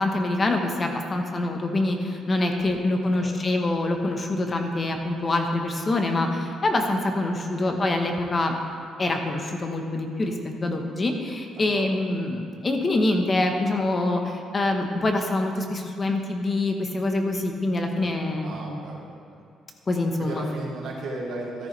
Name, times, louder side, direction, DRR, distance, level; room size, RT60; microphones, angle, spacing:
voice 1, 0.0-8.5 9.0-18.8 19.9-20.4, left 2 dB, 30° left, 3 dB, 1.1 m, -25 dB
voice 2, 2.9-3.4 7.5-7.8 11.5-12.0 17.8-19.4 20.2-21.7, right 2 dB, 70° right, -3 dB, 2.3 m, -37 dB
13.0 x 10.5 x 3.3 m, 2.4 s
cardioid pair, 110°, 0 cm